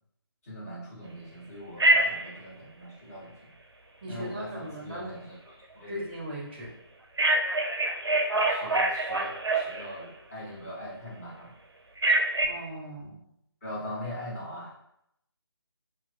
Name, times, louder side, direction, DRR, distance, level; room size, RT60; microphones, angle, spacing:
voice 1, 0.4-3.3 4.1-5.4 5.7-5.9 8.4-11.5 13.6-14.7, left 1 dB, 35° left, -7 dB, 1.1 m, -41 dB
Telephone, 1.8-2.3 7.2-10.1 12.0-12.5, right 2 dB, 80° right, 0.4 m, -25 dB
voice 2, 4.0-5.1 5.9-6.7 12.4-13.2, right 1 dB, 25° right, -2 dB, 0.6 m, -38 dB
2.8 x 2.4 x 2.3 m, 0.77 s
figure-of-eight pair, 150°, 13 cm